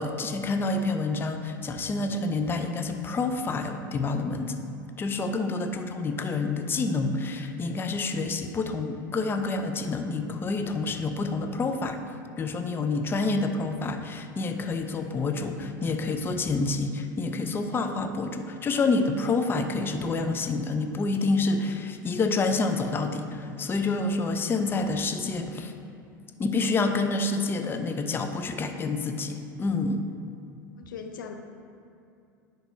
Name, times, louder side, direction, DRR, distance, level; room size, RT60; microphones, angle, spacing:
voice 1, 0.0-4.5 5.0-12.0 12.4-25.7 26.4-30.0, left 3 dB, 20° left, 6 dB, 0.4 m, -28 dB
voice 2, 30.8-31.4, left 7 dB, 75° left, 5 dB, 0.5 m, -40 dB
10.0 x 4.0 x 2.7 m, 2.6 s
hypercardioid pair, 85°, 11 cm